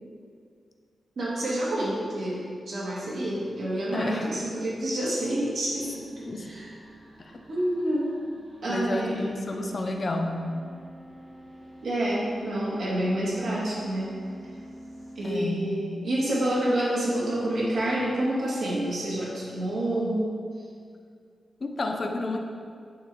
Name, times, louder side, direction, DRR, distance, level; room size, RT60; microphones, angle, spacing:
voice 1, 1.2-6.0 6.4-6.7 7.5-8.1 8.6-9.1 11.8-14.2 15.2-20.2, right 1 dB, 70° right, -6 dB, 1.7 m, -28 dB
voice 2, 3.9-4.3 6.3-6.5 7.2-7.4 8.7-10.4 15.2-15.7 21.6-22.4, left 2 dB, 35° left, 3 dB, 0.6 m, -30 dB
sound 1, 5.7-15.3, right 1 dB, 50° right, 1.7 m, -48 dB
8.2 x 3.9 x 4.7 m, 2.2 s
wide cardioid pair, 160°, 0 cm